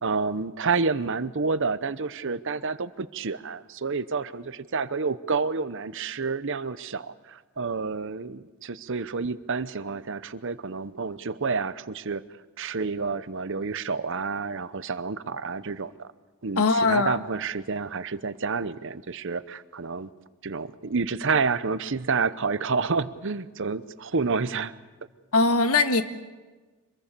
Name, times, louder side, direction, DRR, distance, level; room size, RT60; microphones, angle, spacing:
voice 1, 0.0-12.2 12.6-16.1 16.4-20.1 20.4-24.7, right 4 dB, 55° right, 14 dB, 0.8 m, -29 dB
voice 2, 16.6-17.2 25.3-26.0, left 3 dB, 75° left, 8 dB, 1.6 m, -21 dB
25.5 x 22.0 x 6.8 m, 1.3 s
head